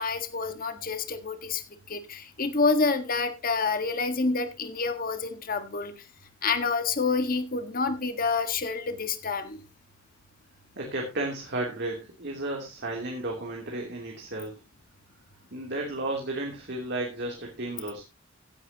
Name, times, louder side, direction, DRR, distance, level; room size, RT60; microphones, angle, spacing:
voice 1, 0.0-1.6 1.9-5.9 6.4-9.6, left 4 dB, 45° left, 9 dB, 1.6 m, -28 dB
voice 2, 10.8-14.6 15.5-18.0, right 2 dB, 55° right, 0 dB, 3.0 m, -33 dB
16.0 x 10.0 x 2.9 m, 0.26 s
head